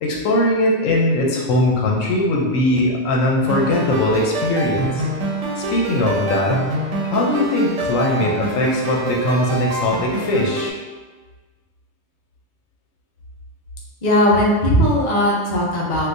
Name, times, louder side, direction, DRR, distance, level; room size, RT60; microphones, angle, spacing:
voice 1, 0.0-5.1 5.6-6.6 7.0-10.8, left 1 dB, 80° left, -1 dB, 1.0 m, -20 dB
sound 1, 3.4-10.7, right 1 dB, 75° right, 1.0 m, -25 dB
voice 2, 14.0-16.1, equal, 45° left, -4 dB, 0.6 m, -17 dB
3.7 x 2.4 x 2.5 m, 1.3 s
omnidirectional pair, 1.3 m